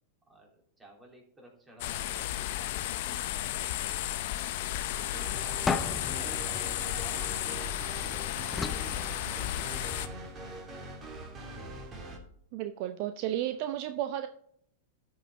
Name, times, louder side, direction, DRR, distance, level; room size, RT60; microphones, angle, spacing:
voice 1, 0.3-2.8 3.1-4.2 4.7-7.8 8.1-10.4 13.5-13.9, right 1 dB, 15° right, 0 dB, 3.4 m, -55 dB
sound 1, 1.8-10.1, left 14 dB, 60° left, 0.7 m, -33 dB
sound 2, 5.1-12.2, right 2 dB, 30° right, 2.6 m, -42 dB
sound 3, 5.7-7.9 8.5-9.9, left 4 dB, 15° left, 0.7 m, -35 dB
voice 2, 12.5-14.3, right 12 dB, 50° right, 9 dB, 0.6 m, -33 dB
13.0 x 5.7 x 3.7 m, 0.67 s
hypercardioid pair, 100°, 0 cm